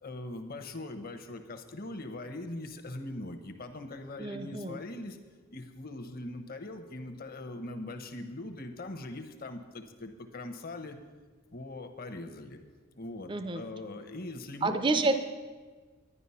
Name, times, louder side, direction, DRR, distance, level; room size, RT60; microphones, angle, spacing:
voice 1, 0.0-5.2 5.5-11.0 11.5-12.6 13.0-15.1, left 2 dB, 45° left, 7 dB, 0.9 m, -41 dB
voice 2, 4.2-4.8 13.3-13.6 14.6-15.2, right 3 dB, 20° right, 8 dB, 0.5 m, -28 dB
11.0 x 10.0 x 5.7 m, 1.4 s
head